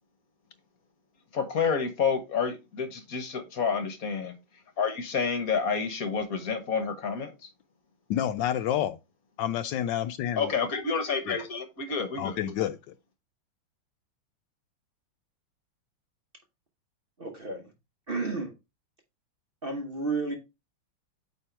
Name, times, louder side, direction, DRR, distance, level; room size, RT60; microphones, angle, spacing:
voice 1, 1.3-4.4 4.8-7.3 10.4-12.5, left 5 dB, 50° left, 1.5 m, -29 dB
voice 2, 8.1-9.0 9.4-10.5 11.3-11.4 12.2-12.9, left 10 dB, 75° left, 1.2 m, -29 dB
voice 3, 17.2-17.7 18.1-18.5 19.6-20.4, right 3 dB, 35° right, 1.0 m, -31 dB
8.8 x 3.5 x 4.4 m
omnidirectional pair, 2.1 m